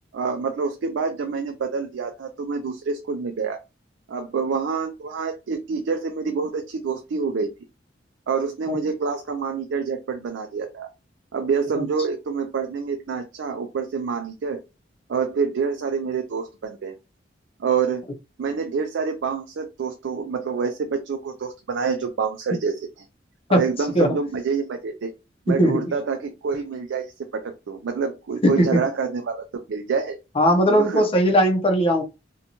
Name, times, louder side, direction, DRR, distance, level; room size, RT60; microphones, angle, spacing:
voice 1, 0.1-3.6 4.1-7.5 8.3-10.9 11.3-14.6 15.1-16.9 17.6-18.0 18.4-22.9 23.5-25.1 25.5-30.2 30.7-31.0, right 5 dB, 80° right, 0.4 m, -27 dB
voice 2, 25.5-25.8 28.4-28.8 30.4-32.0, equal, 30° left, 0.6 m, -19 dB
2.6 x 2.2 x 2.8 m
head